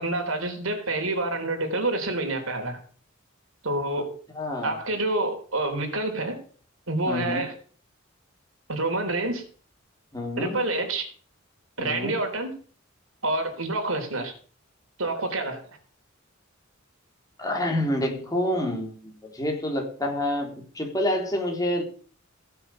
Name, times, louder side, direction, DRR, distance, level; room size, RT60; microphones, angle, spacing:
voice 1, 0.0-2.8 3.6-4.1 4.6-6.4 6.9-7.5 8.7-9.4 10.4-11.1 11.8-12.5 13.2-14.3 15.0-15.6, right 2 dB, 80° right, 3.7 m, -27 dB
voice 2, 4.4-4.8 7.1-7.4 10.1-10.6 11.8-12.2 17.4-21.8, left 1 dB, 20° left, 3.8 m, -28 dB
16.0 x 7.1 x 6.9 m
head